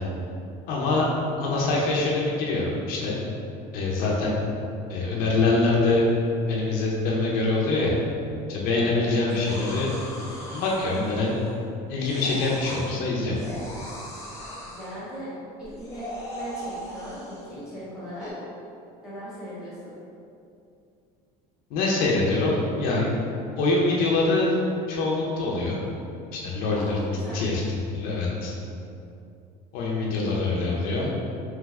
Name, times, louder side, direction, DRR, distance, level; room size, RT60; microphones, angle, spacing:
voice 1, 0.7-1.1 1.4-3.2 3.7-4.4 4.9-6.1 6.5-7.9 8.5-9.9 10.5-11.3 11.9-13.4 21.7-23.1 23.6-24.6 24.9-25.8 26.3-27.0 27.3-27.6 27.9-28.5 29.7-31.1, left 3 dB, 65° left, -4 dB, 0.7 m, -24 dB
sound 1, 9.4-11.7 12.0-12.9 13.3-15.0 15.6-17.5 18.2-18.3, equal, 20° left, 0.8 m, -39 dB
voice 2, 14.6-15.3 15.6-16.0 16.3-18.3 19.0-19.9 26.7-27.4, equal, 5° right, -11 dB, 1.4 m, -38 dB
3.5 x 3.3 x 3.2 m, 2.5 s
cardioid pair, 165°, 16 cm